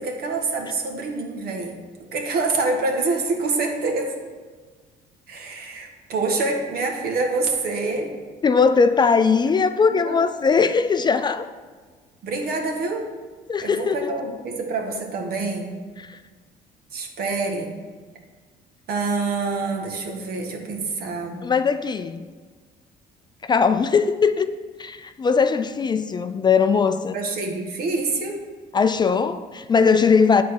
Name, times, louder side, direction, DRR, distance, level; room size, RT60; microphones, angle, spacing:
voice 1, 0.0-1.7 2.1-4.2 5.3-8.1 9.6-9.7 10.0-10.2 12.2-13.0 13.6-15.8 16.9-17.7 18.9-21.5 27.1-28.4, right 3 dB, 65° right, 1.5 m, -26 dB
voice 2, 8.4-11.5 13.5-14.1 16.0-16.2 21.4-22.2 23.4-24.5 24.8-27.2 28.7-30.4, left 5 dB, 25° left, 0.3 m, -20 dB
9.5 x 4.2 x 6.3 m
cardioid pair, 110°, 17 cm